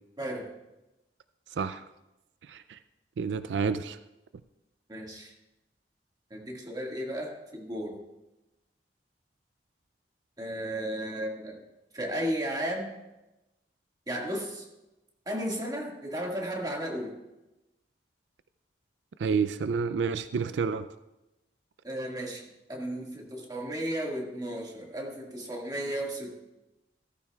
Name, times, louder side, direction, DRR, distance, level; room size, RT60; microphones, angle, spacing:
voice 1, 0.2-0.5 4.9-5.3 6.3-8.0 10.4-11.6 11.9-12.9 14.1-14.7 15.3-17.2 21.8-22.4 22.7-26.4, equal, 25° right, -1 dB, 1.8 m, -34 dB
voice 2, 1.5-1.9 2.4-2.8 3.2-4.0 19.2-20.9, right 5 dB, 90° right, 13 dB, 0.4 m, -29 dB
15.5 x 14.0 x 2.3 m, 0.99 s
head